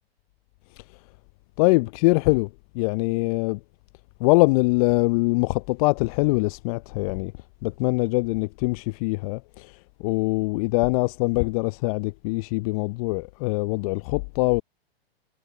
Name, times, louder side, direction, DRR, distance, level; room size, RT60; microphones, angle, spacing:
voice 1, 1.6-2.5 2.7-3.6 4.2-7.3 7.6-9.7 10.0-14.6, left 26 dB, 35° left, 0.6 m, -23 dB
hypercardioid pair, 110°, 31 cm